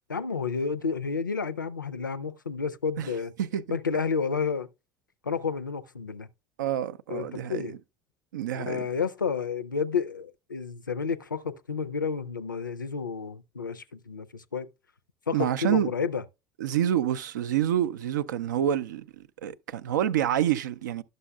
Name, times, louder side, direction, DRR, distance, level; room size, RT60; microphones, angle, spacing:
voice 1, 0.1-3.3 3.7-4.7 5.2-6.3 7.1-7.7 8.5-14.7 15.3-16.2, left 5 dB, 90° left, 0.4 m, -31 dB
voice 2, 3.4-3.8 6.6-7.8 8.3-8.9 15.3-15.9 16.6-21.0, right 10 dB, 75° right, 0.4 m, -27 dB
11.5 x 6.4 x 2.2 m
figure-of-eight pair, 65°, 10 cm